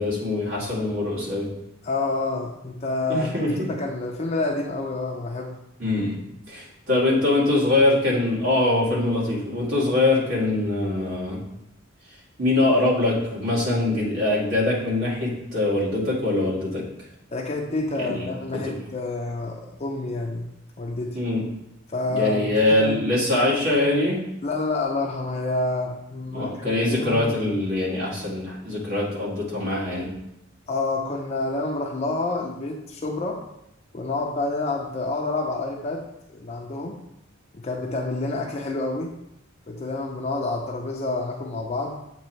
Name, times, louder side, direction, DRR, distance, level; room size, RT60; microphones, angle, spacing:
voice 1, 0.0-1.5 3.1-3.7 5.8-6.2 6.5-11.4 12.4-16.8 18.0-18.3 18.5-18.7 21.1-21.4 22.1-24.2 26.3-30.1, left 2 dB, 75° right, -6 dB, 2.1 m, -23 dB
voice 2, 1.8-5.5 17.3-20.5 20.8-21.2 21.9-23.0 24.4-27.3 30.7-33.4 33.9-37.0 37.5-39.1 39.7-42.0, left 2 dB, 35° left, 0 dB, 0.5 m, -28 dB
7.5 x 3.0 x 4.4 m, 0.84 s
head